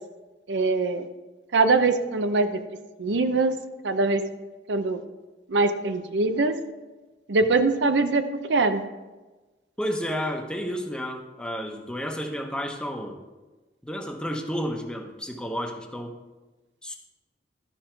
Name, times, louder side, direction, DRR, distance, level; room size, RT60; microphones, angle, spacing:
voice 1, 0.5-1.1 1.5-2.5 3.0-3.5 3.8-4.2 4.7-5.0 5.5-6.6 7.3-8.8, right 3 dB, 90° right, 9 dB, 0.7 m, -22 dB
voice 2, 9.8-13.2 13.8-16.1 16.8-17.0, equal, 5° left, 3 dB, 0.8 m, -31 dB
12.5 x 5.4 x 4.5 m, 1.2 s
head